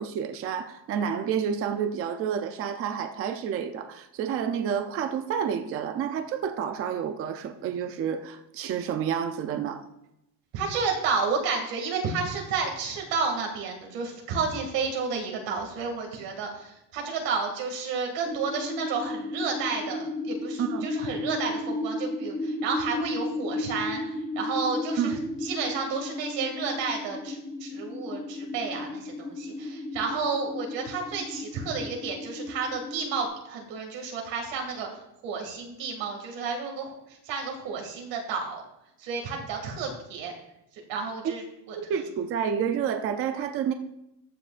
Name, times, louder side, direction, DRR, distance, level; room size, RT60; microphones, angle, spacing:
voice 1, 0.0-9.8 20.6-20.9 25.0-25.2 30.1-30.2 41.2-41.3 41.9-43.7, right 8 dB, 35° right, 7 dB, 0.5 m, -29 dB
voice 2, 10.5-38.6 39.0-40.3 40.7-41.4 41.7-41.8, right 5 dB, 85° right, 1 dB, 2.3 m, -31 dB
sound 1, 18.3-33.3, left 2 dB, 15° left, 0.7 m, -34 dB
14.0 x 8.6 x 2.5 m, 0.86 s
cardioid pair, 180°, 41 cm